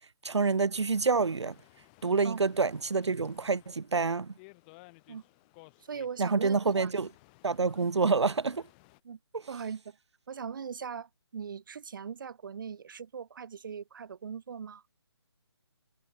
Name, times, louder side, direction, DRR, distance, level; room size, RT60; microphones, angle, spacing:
voice 1, 0.2-1.6 2.0-4.3 6.2-7.1 7.4-8.6, right 4 dB, 90° right, 0.5 m, -27 dB
sound 1, 0.7-9.0, left 28 dB, 20° left, 3.4 m, -59 dB
voice 2, 5.8-6.9 7.8-7.9 9.0-9.2 9.5-10.0 10.3-14.8, right 6 dB, 50° right, 0.7 m, -40 dB
figure-of-eight pair, 150°, 14 cm